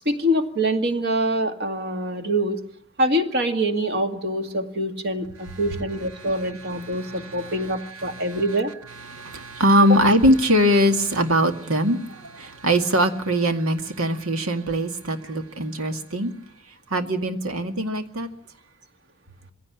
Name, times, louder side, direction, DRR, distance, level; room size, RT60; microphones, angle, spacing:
voice 1, 0.1-2.6 3.0-8.7 9.8-10.0, right 1 dB, 50° right, 6 dB, 2.1 m, -24 dB
voice 2, 6.8-7.5 8.0-8.4 9.1-16.3 16.9-18.3, equal, 85° right, 7 dB, 2.1 m, -22 dB
22.0 x 16.5 x 10.0 m, 0.69 s
head